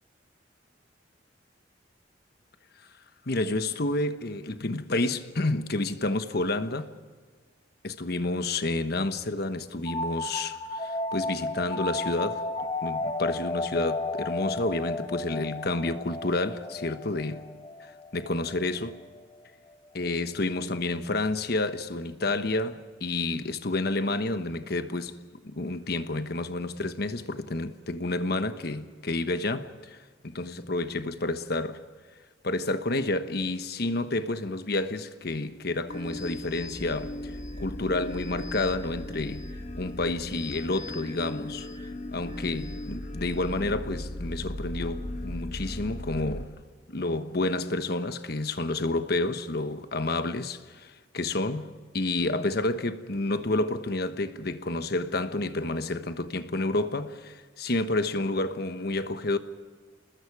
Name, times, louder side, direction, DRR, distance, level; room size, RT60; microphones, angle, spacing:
voice 1, 3.3-6.9 7.8-12.5 12.8-17.4 17.8-19.0 19.9-30.0 30.2-31.8 32.4-39.5 39.8-41.7 42.1-46.5 46.9-59.4, left 2 dB, 55° left, 1.2 m, -30 dB
sound 1, 9.9-19.2, left 2 dB, 25° left, 0.9 m, -33 dB
sound 2, 35.9-46.5, left 1 dB, 40° left, 1.6 m, -37 dB
29.0 x 20.5 x 4.9 m
head